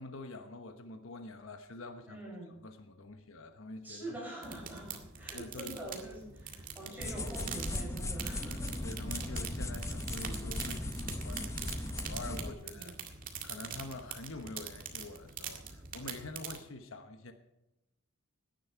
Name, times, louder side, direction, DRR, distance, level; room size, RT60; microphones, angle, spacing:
voice 1, 0.0-2.2 2.6-4.1 5.3-5.8 8.8-12.9 13.4-17.3, left 2 dB, 65° left, 7 dB, 1.1 m, -46 dB
voice 2, 2.1-2.5 3.8-8.8 9.2-9.3 12.6-12.9, right 1 dB, 10° right, -4 dB, 6.7 m, -45 dB
sound 1, 4.4-16.6, right 7 dB, 40° right, 1.9 m, -44 dB
sound 2, 7.0-12.5, left 1 dB, 15° left, 0.7 m, -38 dB
17.0 x 10.5 x 4.6 m, 0.93 s
head